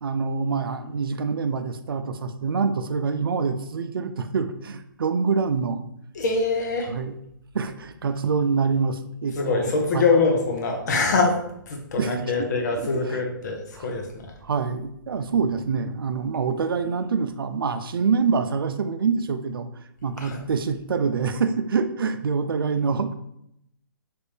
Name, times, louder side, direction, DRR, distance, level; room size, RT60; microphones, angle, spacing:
voice 1, 0.0-5.8 6.9-7.2 7.5-10.1 12.0-12.5 12.8-13.2 13.8-13.9 14.4-23.1, right 5 dB, 85° right, 9 dB, 0.4 m, -26 dB
voice 2, 6.2-6.9 9.4-11.4 11.7-14.1 20.2-20.4, left 3 dB, 50° left, 2 dB, 0.8 m, -23 dB
3.3 x 2.5 x 3.3 m, 0.78 s
hypercardioid pair, 145°, 12 cm